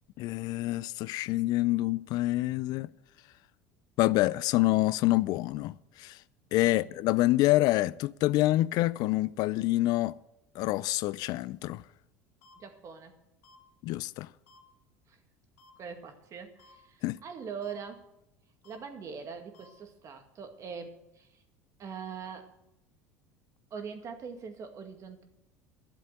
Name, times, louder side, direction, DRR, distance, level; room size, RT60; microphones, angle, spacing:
voice 1, 0.2-2.9 4.0-6.2 6.5-10.1 10.6-11.8 13.8-14.3 17.0-17.2, left 17 dB, 55° left, 0.4 m, -27 dB
sound 1, 12.4-12.5 13.4-13.6 14.5-14.6 15.6-15.7 16.6-16.7 17.6-17.7 18.6-18.8 19.5-19.7, left 2 dB, 85° left, 2.2 m, -57 dB
voice 2, 12.6-13.1 15.1-15.2 15.8-18.0 18.6-21.3 21.8-22.5 23.7-25.2, right 6 dB, 45° right, 2.1 m, -42 dB
12.5 x 7.5 x 7.9 m
hypercardioid pair, 80°, 8 cm